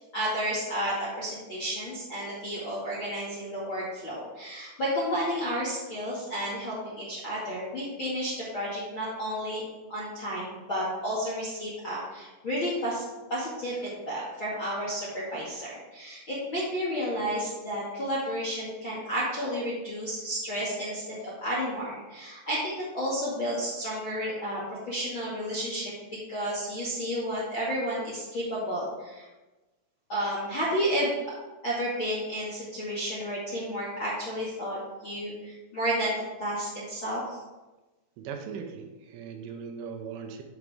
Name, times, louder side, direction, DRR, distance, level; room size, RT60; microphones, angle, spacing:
voice 1, 0.1-9.6 9.9-24.6 24.9-25.9 26.3-29.2 30.1-31.1 31.6-37.4, equal, 45° left, -6 dB, 1.6 m, -31 dB
voice 2, 38.2-40.4, right 6 dB, 75° right, 4 dB, 3.2 m, -39 dB
13.0 x 7.8 x 3.6 m, 1.1 s
omnidirectional pair, 5.9 m